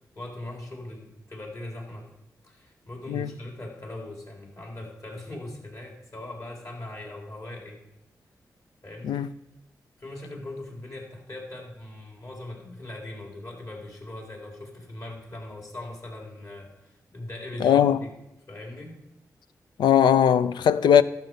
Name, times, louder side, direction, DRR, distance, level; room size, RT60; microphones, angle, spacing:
voice 1, 0.0-2.1 2.4-7.8 8.8-9.3 10.0-18.1 18.5-19.0, left 1 dB, 50° left, 3.9 m, -40 dB
voice 2, 17.6-18.0 19.8-21.0, left 9 dB, 90° left, 0.4 m, -19 dB
12.5 x 6.5 x 5.4 m
cardioid pair, 50°, 7 cm